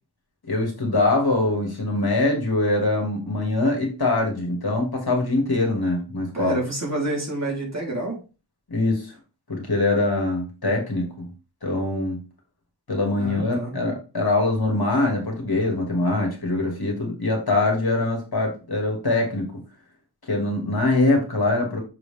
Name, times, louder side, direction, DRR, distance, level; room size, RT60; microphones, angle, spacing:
voice 1, 0.5-6.6 8.7-9.1 9.5-11.3 11.6-12.2 12.9-19.5 20.3-21.8, left 2 dB, 55° left, 1 dB, 2.5 m, -23 dB
voice 2, 6.3-8.2 13.2-13.7, right 2 dB, 35° right, -3 dB, 3.5 m, -28 dB
6.5 x 4.8 x 3.5 m, 0.32 s
wide cardioid pair, 60°, 44 cm